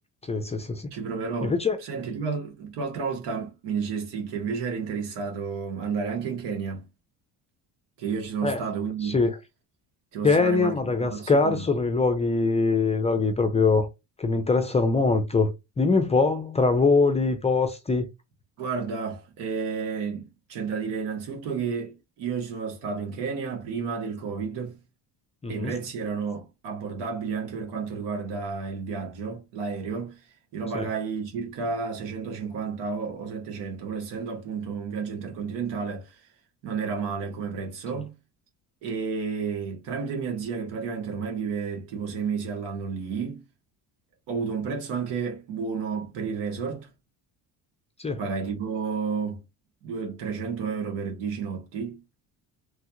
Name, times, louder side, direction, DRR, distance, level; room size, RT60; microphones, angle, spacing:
voice 1, 0.3-0.9 1.4-1.8 8.4-8.6 9.0-9.3 10.2-13.9 14.2-15.5 15.8-18.0 25.4-25.7 30.7-30.9 48.0-48.2, left 4 dB, 15° left, 0.4 m, -23 dB
voice 2, 0.9-1.6 1.8-6.9 8.0-9.2 10.1-11.6 18.6-24.8 25.5-30.2 30.5-36.2 36.6-38.1 38.8-43.4 44.3-46.9 48.2-49.4 49.8-52.0, right 5 dB, 85° right, 1.5 m, -31 dB
3.2 x 2.4 x 2.8 m
cardioid pair, 125°, 41 cm